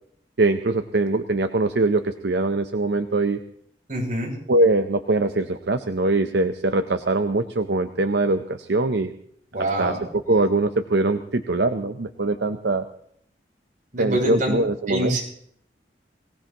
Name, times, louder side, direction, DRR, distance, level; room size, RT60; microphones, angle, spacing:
voice 1, 0.4-3.4 4.5-9.1 9.8-12.8 14.0-15.2, right 2 dB, 70° right, 8 dB, 0.7 m, -22 dB
voice 2, 3.9-4.3 9.5-10.1 13.9-14.6 14.9-15.2, right 1 dB, 50° right, -2 dB, 7.4 m, -25 dB
22.5 x 18.0 x 3.0 m, 0.67 s
head